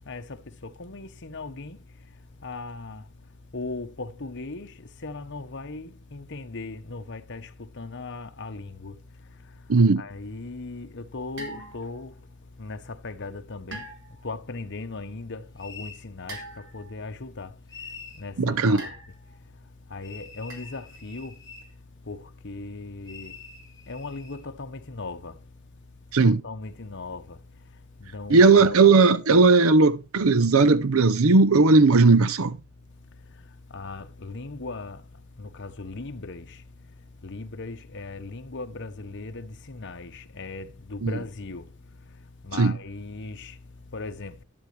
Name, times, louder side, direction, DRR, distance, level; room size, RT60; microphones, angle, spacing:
voice 1, 0.0-1.8 2.4-3.0 3.5-9.0 9.5-12.2 12.6-13.8 14.2-17.5 18.1-19.0 19.9-21.4 22.0-23.4 23.9-25.4 26.2-27.4 28.0-28.7 33.3-33.4 33.7-35.1 35.4-36.6 37.2-41.7 42.4-43.6 43.8-44.4, left 3 dB, 60° left, 1.2 m, -38 dB
voice 2, 9.7-10.0 18.4-18.9 26.1-26.4 28.3-32.6 41.0-41.1 42.5-42.7, right 3 dB, 80° right, 0.7 m, -17 dB
sound 1, 11.4-12.1 13.7-14.3 16.3-17.0 18.8-19.4 20.5-20.8, right 2 dB, 65° right, 4.2 m, -41 dB
sound 2, 15.6-16.0 17.7-18.3 20.0-21.7 23.0-24.4, left 5 dB, 20° left, 2.8 m, -45 dB
12.5 x 12.0 x 3.3 m
head